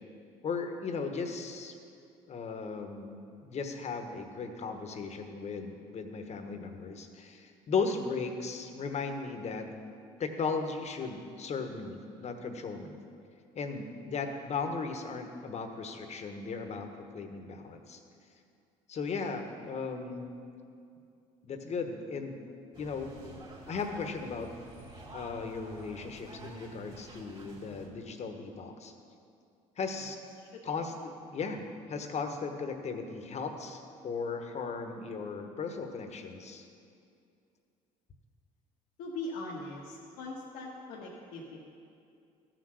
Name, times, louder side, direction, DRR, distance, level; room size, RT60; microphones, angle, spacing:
voice 1, 0.4-1.7 2.3-9.7 10.2-13.0 13.5-16.9 17.1-18.0 18.9-20.3 21.4-22.4 22.8-23.1 23.7-24.5 25.1-28.9 29.8-30.2 30.6-36.6, left 4 dB, 45° left, 6 dB, 1.2 m, -36 dB
sound 1, 22.7-27.9, right 2 dB, 30° right, 2.6 m, -49 dB
voice 2, 30.4-30.8 39.0-41.6, left 2 dB, 80° left, -3 dB, 1.3 m, -41 dB
13.5 x 6.1 x 6.4 m, 2.4 s
supercardioid pair, 85°, 16 cm